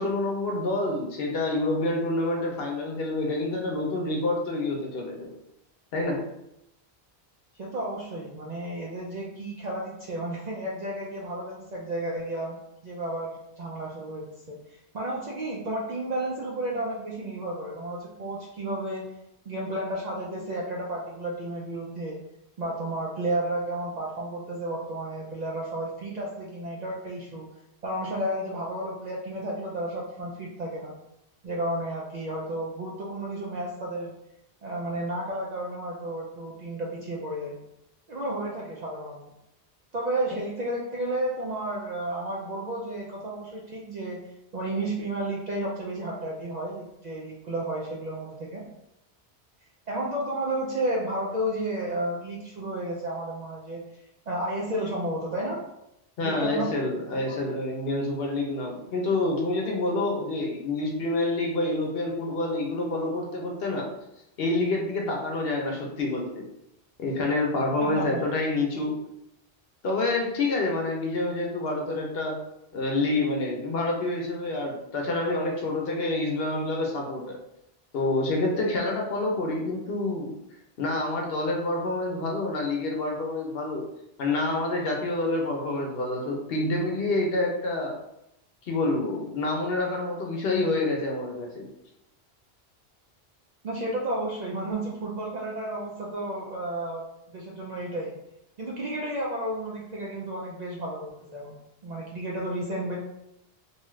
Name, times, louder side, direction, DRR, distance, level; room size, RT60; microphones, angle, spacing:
voice 1, 0.0-5.3 5.9-6.2 56.2-63.9 64.4-66.4 67.0-69.0 69.8-72.4 72.7-77.4 77.9-80.3 80.8-83.9 84.2-88.0 88.6-91.7, left 2 dB, 65° left, 0 dB, 0.8 m, -27 dB
voice 2, 7.6-12.6 12.8-19.1 19.5-22.2 22.6-27.5 27.8-30.9 31.4-34.1 34.6-37.5 38.1-39.2 39.9-44.2 44.5-48.6 49.9-53.8 54.3-55.6 56.2-56.7 57.1-57.4 67.8-68.2 93.6-97.0 97.3-98.1 98.6-103.0, right 1 dB, 60° right, -4 dB, 0.4 m, -32 dB
2.6 x 2.3 x 3.1 m, 0.85 s
omnidirectional pair, 1.1 m